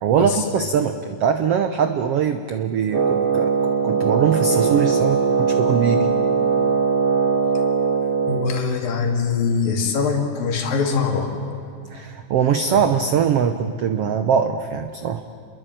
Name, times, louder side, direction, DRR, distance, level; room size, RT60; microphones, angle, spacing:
voice 1, 0.0-6.1 11.9-15.2, right 7 dB, 90° right, 8 dB, 1.3 m, -22 dB
Wind instrument woodwind instrument, 2.9-8.6, right 5 dB, 35° right, 1.7 m, -20 dB
Acoustic guitar, 4.5-8.0, right 2 dB, 10° right, 2.0 m, -35 dB
voice 2, 8.3-11.3 12.7-12.8, left 5 dB, 75° left, 3 dB, 4.2 m, -22 dB
28.0 x 22.0 x 9.1 m, 2.5 s
omnidirectional pair, 4.1 m